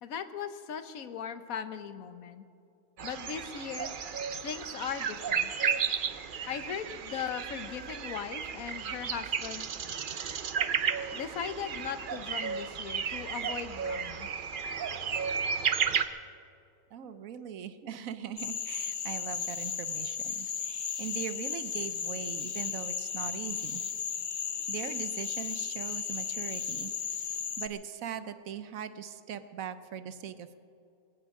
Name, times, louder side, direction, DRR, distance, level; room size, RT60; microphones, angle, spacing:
voice 1, 0.0-2.4 3.0-3.9 4.4-5.5 6.5-9.7 11.1-14.3, left 7 dB, 70° left, 10 dB, 1.3 m, -38 dB
sound 1, 3.0-16.1, right 7 dB, 50° right, 0.6 m, -33 dB
voice 2, 16.9-23.8 24.7-26.9 27.6-30.6, right 8 dB, 70° right, 11 dB, 1.1 m, -40 dB
Cricket / Frog, 18.4-27.7, left 7 dB, 45° left, 0.6 m, -35 dB
21.0 x 17.0 x 3.7 m, 2.6 s
omnidirectional pair, 1.5 m